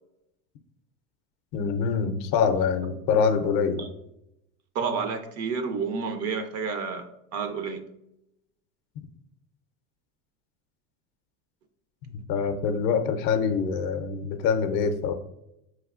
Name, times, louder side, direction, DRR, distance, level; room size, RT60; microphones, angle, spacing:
voice 1, 1.5-3.9 12.0-15.1, left 6 dB, 55° left, 8 dB, 0.5 m, -25 dB
voice 2, 4.7-7.1 7.3-7.8, right 5 dB, 40° right, 7 dB, 0.5 m, -30 dB
4.7 x 3.2 x 2.4 m, 0.83 s
supercardioid pair, 120°, 40 cm